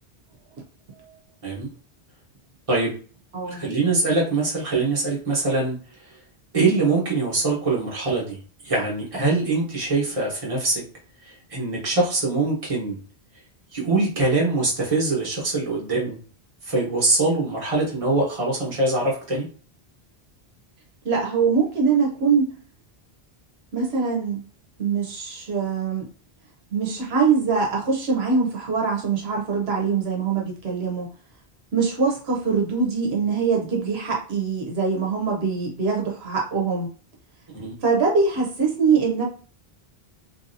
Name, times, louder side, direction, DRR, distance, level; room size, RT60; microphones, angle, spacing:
voice 1, 3.5-5.8 6.5-8.4 8.6-10.8 11.3-13.0 13.7-16.2 16.7-19.5 37.5-37.7, right 3 dB, 35° right, -4 dB, 1.2 m, -23 dB
voice 2, 21.0-22.5 23.7-24.4 24.8-26.0 26.7-31.1 31.7-36.9 37.8-39.2, right 5 dB, 80° right, -1 dB, 1.0 m, -23 dB
3.1 x 2.7 x 2.6 m, 0.39 s
omnidirectional pair, 1.1 m